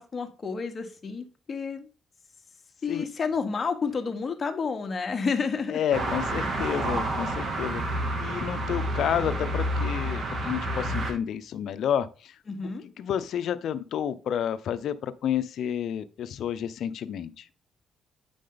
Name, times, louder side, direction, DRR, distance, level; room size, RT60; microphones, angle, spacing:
voice 1, 0.0-1.9 2.8-5.8 12.5-12.8, left 5 dB, 40° left, 1.2 m, -30 dB
voice 2, 5.7-12.3 13.0-17.4, left 9 dB, 70° left, 0.6 m, -30 dB
sound 1, 5.9-11.1, right 1 dB, 55° right, 1.9 m, -29 dB
8.5 x 5.0 x 3.8 m
cardioid pair, 90°, 0 cm